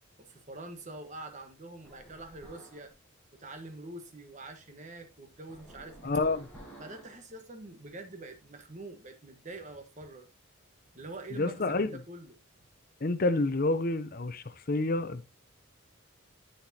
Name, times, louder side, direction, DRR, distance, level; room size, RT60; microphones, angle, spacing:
voice 1, 0.2-2.9 3.3-6.1 6.8-10.3 10.9-12.4, right 2 dB, 35° right, 1.3 m, -45 dB
sound 1, 1.8-2.9 5.5-7.2, right 1 dB, 5° left, 5.8 m, -51 dB
voice 2, 6.0-6.5 11.3-11.9 13.0-15.2, left 2 dB, 40° left, 0.6 m, -28 dB
10.0 x 8.1 x 2.8 m
head